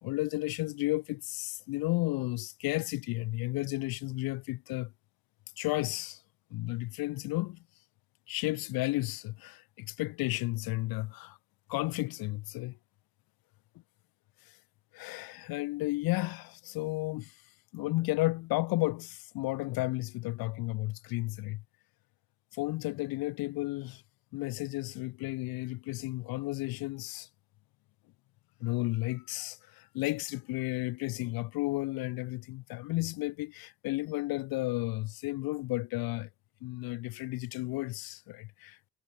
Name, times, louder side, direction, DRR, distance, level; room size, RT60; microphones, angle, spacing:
voice 1, 0.0-4.9 5.6-6.2 6.5-7.6 8.3-11.4 11.7-12.8 14.9-17.3 17.7-21.6 22.5-24.0 24.3-27.3 28.6-36.3 36.6-38.8, left 20 dB, 90° left, 0.7 m, -33 dB
cardioid pair, 175°, 35 cm